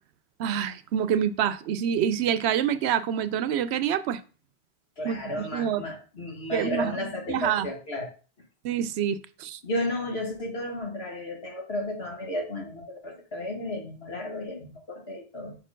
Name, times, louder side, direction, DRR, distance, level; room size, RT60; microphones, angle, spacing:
voice 1, 0.4-4.2 5.0-5.8 6.5-6.9 7.3-7.7 8.6-9.6, right 9 dB, 80° right, 0.8 m, -27 dB
voice 2, 5.0-8.1 9.6-15.6, left 1 dB, 70° left, 2.0 m, -33 dB
5.6 x 4.4 x 5.1 m
omnidirectional pair, 1.1 m